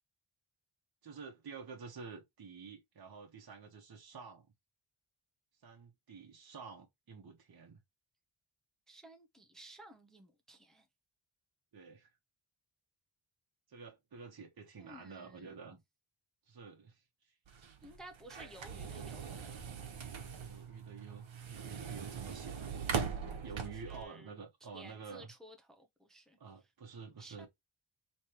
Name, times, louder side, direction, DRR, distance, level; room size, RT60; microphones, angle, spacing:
voice 1, 1.0-4.5 5.6-7.8 11.7-12.1 13.7-15.8 16.5-17.3 20.4-22.9 23.4-25.3 26.4-27.5, right 5 dB, 45° right, 1.0 m, -50 dB
voice 2, 8.9-10.8 14.8-15.8 17.8-19.6 23.5-24.4 24.7-26.4 27.2-27.5, right 1 dB, ahead, 0.6 m, -55 dB
sound 1, 17.5-24.0, right 6 dB, 65° right, 1.1 m, -41 dB
3.2 x 3.2 x 4.3 m
wide cardioid pair, 150°, 49 cm